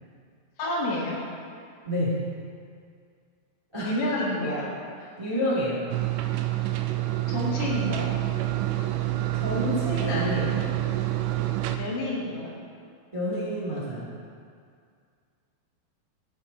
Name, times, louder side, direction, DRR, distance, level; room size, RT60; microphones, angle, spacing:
voice 1, 0.6-1.2 3.8-4.7 7.3-8.1 11.8-12.5, left 2 dB, 75° left, -4 dB, 3.5 m, -29 dB
voice 2, 1.8-2.2 3.7-4.7 5.2-5.9 9.3-10.7 13.1-14.1, equal, 15° right, -9 dB, 1.1 m, -29 dB
sound 1, 5.9-11.8, right 15 dB, 85° right, 2.8 m, -27 dB
17.0 x 6.5 x 2.8 m, 2.2 s
omnidirectional pair, 5.1 m